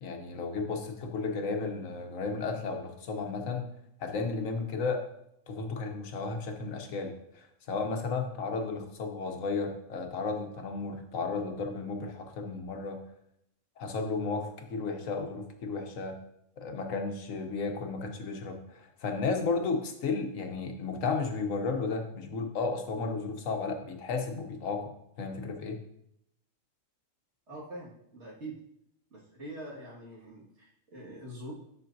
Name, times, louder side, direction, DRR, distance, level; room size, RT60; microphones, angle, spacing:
voice 1, 0.0-3.7 4.0-5.0 5.5-13.0 13.8-16.2 16.6-25.8, left 4 dB, 75° left, 5 dB, 1.3 m, -33 dB
voice 2, 27.5-28.6 29.1-31.5, right 1 dB, 60° right, -4 dB, 2.3 m, -44 dB
10.5 x 6.1 x 2.7 m, 0.77 s
omnidirectional pair, 1.4 m